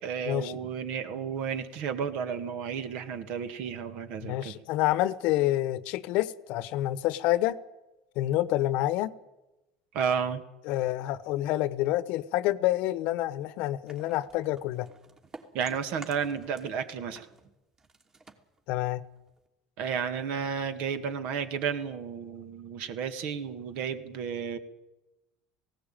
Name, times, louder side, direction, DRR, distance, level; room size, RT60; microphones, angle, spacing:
voice 1, 0.0-4.5 9.9-10.4 15.5-17.3 19.8-24.6, right 7 dB, 65° right, 2.1 m, -32 dB
voice 2, 4.2-7.6 8.2-9.1 10.7-14.9 18.7-19.0, left 15 dB, 65° left, 1.0 m, -28 dB
sound 1, 13.9-16.8 17.1-19.5, right 3 dB, 25° right, 2.9 m, -51 dB
18.5 x 17.0 x 9.0 m
hypercardioid pair, 75°, 2 cm